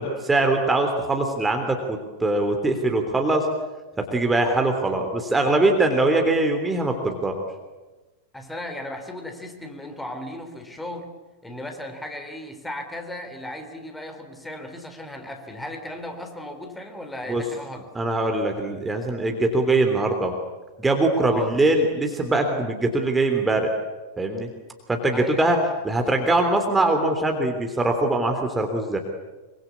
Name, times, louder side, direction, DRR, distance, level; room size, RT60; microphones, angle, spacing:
voice 1, 0.0-3.5 4.1-7.4 17.3-17.4 17.9-20.3 20.8-23.7 24.2-24.5 24.9-25.6 25.8-29.0, right 2 dB, 10° right, 4 dB, 3.3 m, -22 dB
voice 2, 8.3-11.1 11.4-17.9 21.3-21.5 25.1-25.4, left 1 dB, 5° left, 5 dB, 3.9 m, -36 dB
25.5 x 24.5 x 8.5 m, 1.2 s
figure-of-eight pair, 90°, 0 cm